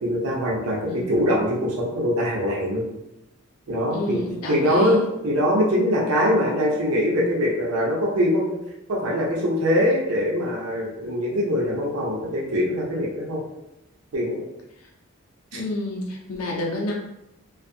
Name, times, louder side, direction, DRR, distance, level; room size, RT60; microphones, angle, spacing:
voice 1, 0.0-2.8 3.7-4.2 4.5-5.0 5.2-8.6 8.9-13.4 14.1-14.4 15.5-15.6, equal, 85° right, -3 dB, 0.6 m, -23 dB
voice 2, 3.9-5.1 15.5-16.9, left 2 dB, 85° left, -2 dB, 0.5 m, -29 dB
2.4 x 2.4 x 2.6 m, 0.90 s
head